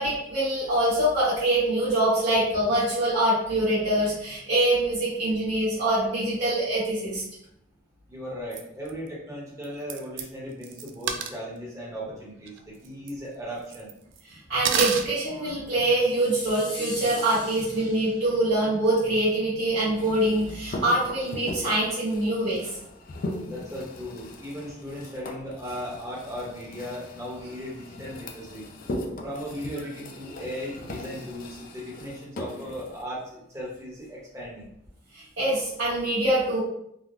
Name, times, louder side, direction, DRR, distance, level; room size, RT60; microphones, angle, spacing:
voice 1, 0.0-7.2 14.3-22.7 35.1-36.6, right 1 dB, 70° right, -13 dB, 1.2 m, -24 dB
voice 2, 8.1-13.9 23.5-28.7 29.2-34.7, equal, 15° right, -6 dB, 0.9 m, -37 dB
sound 1, 8.5-8.6 8.9-9.0 9.6-9.7 9.9-10.2 10.6-11.4 12.5-12.6 12.8-13.1 13.7-14.2 14.6-15.0, right 7 dB, 85° right, 0.3 m, -28 dB
sound 2, 16.0-18.5, left 2 dB, 65° left, 1.2 m, -41 dB
sound 3, 19.9-33.0, left 1 dB, 50° left, 0.3 m, -39 dB
3.5 x 2.1 x 2.5 m, 0.76 s
head